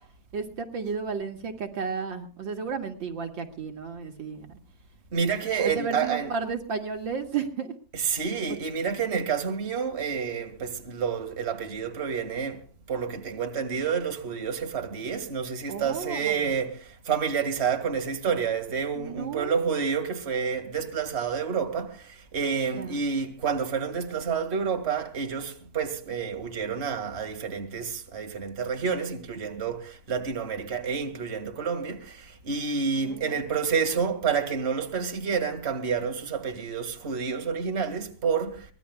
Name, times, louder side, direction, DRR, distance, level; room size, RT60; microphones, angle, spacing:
voice 1, 0.3-4.6 5.1-5.2 5.6-7.7 15.7-16.5 18.9-19.6 22.7-23.0 33.0-33.4, right 5 dB, 75° right, 2.8 m, -33 dB
voice 2, 5.1-6.3 7.9-38.7, right 6 dB, 35° right, 2.3 m, -29 dB
24.0 x 19.0 x 2.3 m
omnidirectional pair, 2.1 m